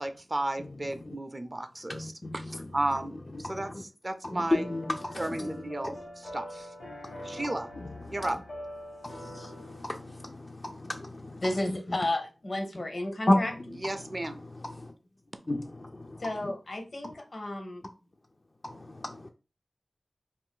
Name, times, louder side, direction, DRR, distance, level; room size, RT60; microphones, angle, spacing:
voice 1, 0.0-3.1 3.4-4.7 5.2-6.7 7.2-7.7 8.1-8.4 13.8-14.4, right 1 dB, 35° right, 0.4 m, -34 dB
voice 2, 1.9-2.3 3.4-3.8 4.2-5.5 5.8-6.0 7.0-7.4 9.0-11.4 11.7-11.8 13.3-13.4 14.6-14.9 15.5-16.2 18.6-19.3, left 1 dB, 45° left, 0.3 m, -32 dB
sound 1, 4.5-10.3, equal, 80° left, 1.2 m, -44 dB
voice 3, 11.4-13.5 16.2-17.8, left 1 dB, 60° left, 0.7 m, -32 dB
2.5 x 2.2 x 3.6 m
cardioid pair, 45°, 0 cm